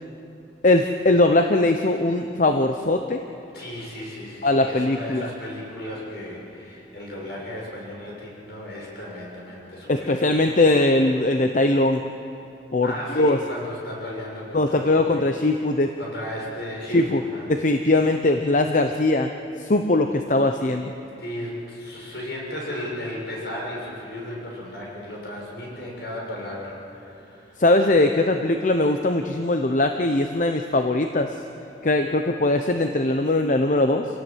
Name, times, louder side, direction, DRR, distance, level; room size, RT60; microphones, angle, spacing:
voice 1, 0.6-3.2 4.4-5.3 9.9-12.0 12.7-13.4 14.5-15.9 16.9-17.2 17.5-19.3 19.6-20.9 27.6-31.3 31.8-34.1, left 2 dB, 45° left, 6 dB, 0.8 m, -20 dB
voice 2, 3.5-10.4 12.8-15.3 16.0-17.5 21.2-27.6, left 1 dB, 65° left, -3 dB, 6.9 m, -35 dB
27.0 x 17.0 x 7.5 m, 2.8 s
head